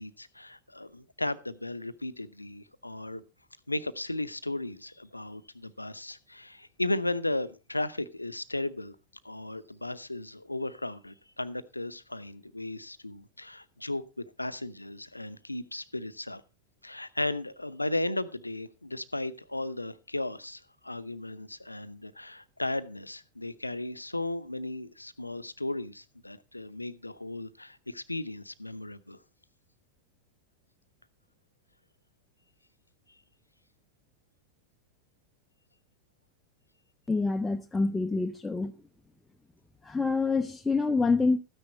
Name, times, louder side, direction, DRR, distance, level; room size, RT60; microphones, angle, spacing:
voice 1, 0.0-3.2 3.7-9.0 9.2-16.4 16.8-29.2, left 2 dB, 85° left, 0.7 m, -35 dB
voice 2, 37.1-38.7 39.8-41.4, left 3 dB, 10° left, 0.7 m, -26 dB
13.5 x 9.8 x 4.2 m
figure-of-eight pair, 90°, 0 cm